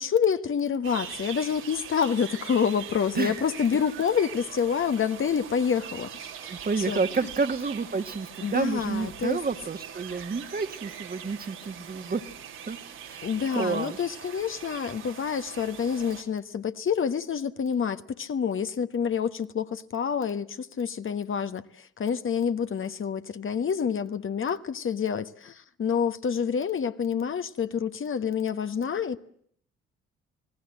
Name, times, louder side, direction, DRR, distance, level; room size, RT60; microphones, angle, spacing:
voice 1, 0.0-6.3 6.9-7.3 8.4-9.4 13.2-29.2, left 7 dB, 45° left, 1.3 m, -28 dB
sound 1, 0.8-16.2, right 8 dB, 85° right, 4.3 m, -42 dB
voice 2, 6.5-12.2 12.7-12.8 13.0-13.3 13.6-14.0, right 4 dB, 30° right, 1.8 m, -29 dB
27.5 x 18.5 x 7.6 m
supercardioid pair, 60°, 29 cm